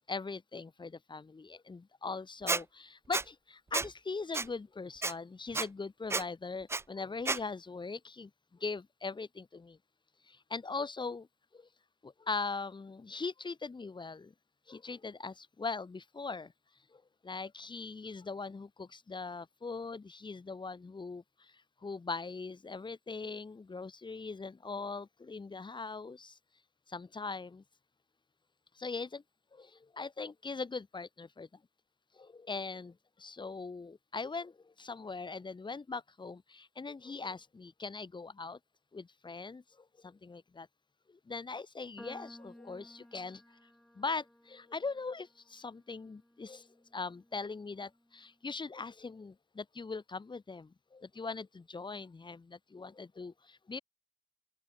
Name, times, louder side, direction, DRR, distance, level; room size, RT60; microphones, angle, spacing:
voice 1, 0.1-9.8 10.2-11.3 11.5-11.7 12.0-14.3 14.7-16.5 16.9-26.4 26.9-27.6 28.7-29.2 29.5-31.5 32.2-38.6 38.9-40.7 41.1-43.4 44.0-53.8, left 4 dB, 35° left, 4.5 m, -41 dB
Squeak, 2.5-2.6 3.1-3.2 3.7-3.9 4.3-4.5 5.0-5.1 5.5-5.7 6.1-6.2 6.7-6.8 7.3-7.4, right 3 dB, 20° right, 0.5 m, -31 dB
sound 1, 42.0-48.3, left 1 dB, 5° left, 7.9 m, -57 dB
open air
supercardioid pair, 55°, 14 cm